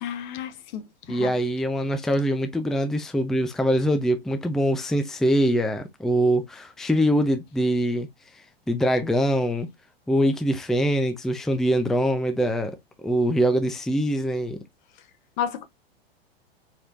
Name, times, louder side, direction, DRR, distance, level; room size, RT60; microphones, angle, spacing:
voice 1, 0.0-0.8 1.1-1.3 15.4-15.6, left 9 dB, 50° left, 0.8 m, -31 dB
voice 2, 1.1-8.1 8.7-9.7 10.1-12.8 13.0-14.6, equal, ahead, 0.5 m, -23 dB
4.5 x 3.2 x 2.5 m
figure-of-eight pair, 95°, 30 cm